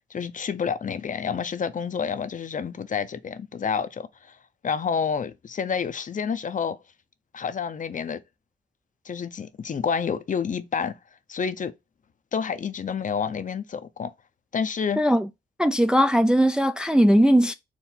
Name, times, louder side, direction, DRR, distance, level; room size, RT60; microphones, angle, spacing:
voice 1, 0.1-4.4 4.6-6.8 7.3-8.2 9.0-10.9 11.3-11.7 12.3-14.1 14.5-15.0, left 6 dB, 45° left, 0.6 m, -29 dB
voice 2, 15.0-15.3 15.6-17.5, equal, 5° right, 0.4 m, -19 dB
4.5 x 2.6 x 4.0 m
cardioid pair, 85°, 19 cm